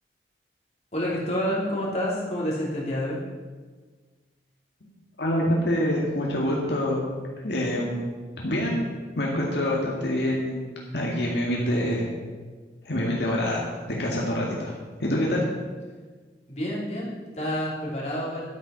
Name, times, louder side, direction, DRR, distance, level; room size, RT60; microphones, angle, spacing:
voice 1, 0.9-3.2 16.5-18.5, equal, 40° left, -5 dB, 3.3 m, -28 dB
voice 2, 5.2-7.1 7.4-8.1 8.4-8.8 9.2-10.6 10.9-12.1 12.8-15.4, left 1 dB, 75° left, -3 dB, 2.0 m, -26 dB
12.0 x 8.7 x 5.7 m, 1.4 s
head